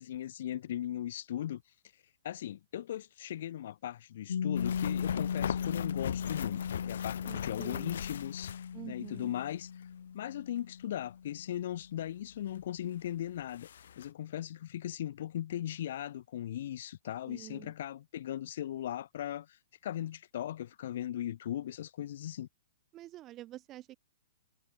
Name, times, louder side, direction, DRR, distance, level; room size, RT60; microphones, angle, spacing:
voice 1, 0.0-1.6 2.2-6.6 6.9-8.5 8.8-9.7 10.1-13.7 14.0-19.6 19.8-22.5, left 11 dB, 45° left, 2.6 m, -38 dB
Piano, 4.3-11.6, left 7 dB, 90° left, 1.7 m, -37 dB
sound 1, 4.6-9.2 9.5-9.6 12.6-12.7 13.0-13.1 13.4-14.1, left 9 dB, 60° left, 2.9 m, -40 dB
voice 2, 7.2-8.0 8.7-9.3 17.3-17.7 22.9-24.0, right 14 dB, 15° right, 0.6 m, -47 dB
hypercardioid pair, 175°, 0 cm